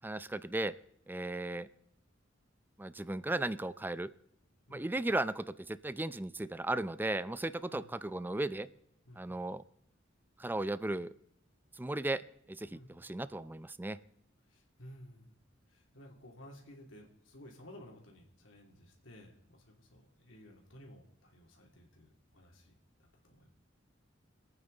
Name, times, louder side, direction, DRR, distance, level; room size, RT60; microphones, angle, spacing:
voice 1, 0.0-0.8 1.1-1.7 2.8-4.1 4.7-8.7 9.2-9.6 10.4-11.1 11.8-12.2 12.5-14.0, right 2 dB, 10° right, 15 dB, 0.4 m, -36 dB
voice 2, 9.0-9.4 12.7-12.9 14.5-15.4 15.7-23.5, left 1 dB, 90° left, 0 dB, 2.8 m, -55 dB
25.5 x 9.1 x 4.0 m, 0.74 s
head